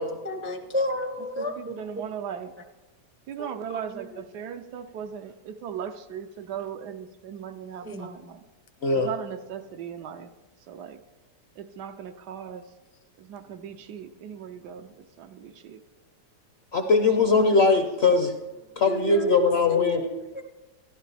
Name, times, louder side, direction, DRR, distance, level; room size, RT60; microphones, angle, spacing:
voice 1, 0.0-1.5 3.4-3.5 3.9-4.2 7.8-8.1 18.9-20.4, equal, 20° right, 4 dB, 0.3 m, -32 dB
voice 2, 1.4-2.5 3.3-8.4 8.9-10.3 10.7-11.0 11.6-12.7 13.2-14.9 15.2-15.8 17.4-17.5, right 8 dB, 80° right, 7 dB, 1.2 m, -38 dB
voice 3, 16.7-18.4 18.8-20.1, left 4 dB, 55° left, 5 dB, 0.8 m, -21 dB
12.5 x 12.0 x 3.3 m, 1.1 s
omnidirectional pair, 1.7 m